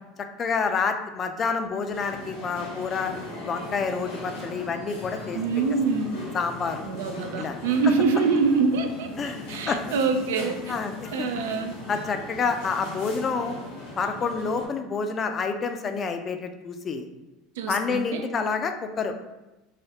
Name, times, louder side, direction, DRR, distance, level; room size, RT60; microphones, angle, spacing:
voice 1, 0.4-3.1 3.4-5.4 6.3-6.9 7.4-7.6 9.2-10.0 10.7-11.3 11.9-13.6 14.0-17.1 17.7-19.2, left 5 dB, 35° left, 6 dB, 0.3 m, -28 dB
sound 1, 1.9-14.7, left 2 dB, 85° left, 1.0 m, -39 dB
voice 2, 5.3-6.1 6.8-10.6 11.1-11.7 17.6-18.2, right 4 dB, 90° right, 6 dB, 0.3 m, -25 dB
3.2 x 2.3 x 2.8 m, 1.0 s
supercardioid pair, 110°, 0 cm